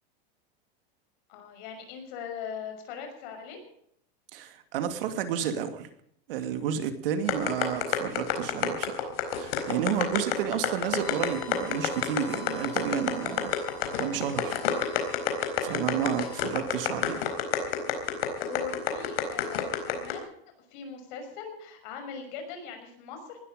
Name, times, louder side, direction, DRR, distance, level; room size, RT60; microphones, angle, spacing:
voice 1, 1.3-3.6 18.4-20.3 20.7-23.4, left 6 dB, 50° left, 5 dB, 5.9 m, -40 dB
voice 2, 4.3-5.9 6.3-9.1 9.4-13.5 14.0-14.6 15.6-17.3, right 9 dB, 65° right, 8 dB, 2.6 m, -31 dB
sound 1, 7.3-20.1, left 11 dB, 75° left, 4.4 m, -27 dB
Bowed string instrument, 10.8-16.5, left 5 dB, 30° left, 5.9 m, -48 dB
19.0 x 13.0 x 5.1 m, 0.69 s
supercardioid pair, 170°, 30 cm